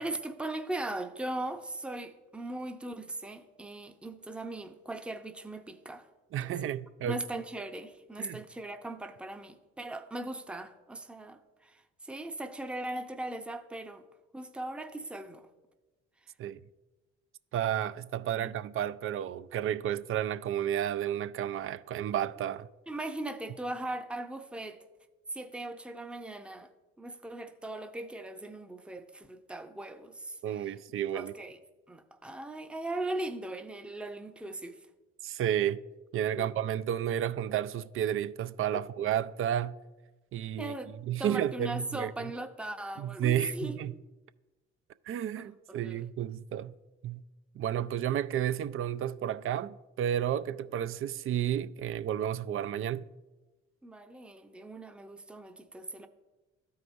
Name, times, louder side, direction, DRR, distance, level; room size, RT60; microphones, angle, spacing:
voice 1, 0.0-6.1 6.4-6.6 7.0-14.0 14.3-15.5 18.3-18.5 22.9-24.8 25.3-26.7 27.0-31.6 31.9-34.8 36.4-36.5 38.7-38.8 40.6-43.9 45.4-46.1 53.8-56.1, right 2 dB, 5° right, 0.6 m, -39 dB
voice 2, 6.3-7.2 8.2-8.4 16.4-16.6 17.5-22.7 30.4-31.3 35.2-35.8 36.1-39.8 40.3-40.7 41.0-42.3 43.0-43.9 45.1-46.7 47.0-47.2 47.6-53.0, right 10 dB, 45° right, 0.4 m, -32 dB
13.5 x 4.7 x 2.6 m
hypercardioid pair, 55°, 30 cm